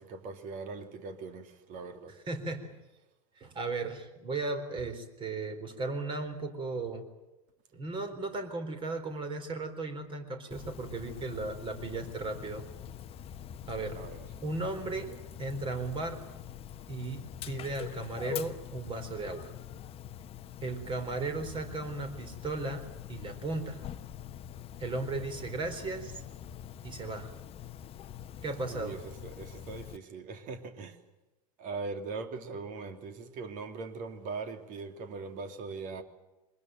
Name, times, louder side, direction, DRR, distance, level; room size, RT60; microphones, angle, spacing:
voice 1, 0.0-2.2 14.0-14.3 28.7-31.0 31.6-36.0, right 4 dB, 40° right, 2.8 m, -41 dB
voice 2, 2.3-2.7 3.4-7.1 7.7-12.7 13.7-14.0 14.4-16.3 16.9-19.5 20.6-23.8 24.8-26.2 26.8-27.3 28.4-29.0, right 3 dB, 25° right, 4.1 m, -36 dB
Dog, 10.5-30.0, left 10 dB, 30° left, 1.1 m, -44 dB
23.5 x 20.5 x 9.2 m
figure-of-eight pair, 95°, 20 cm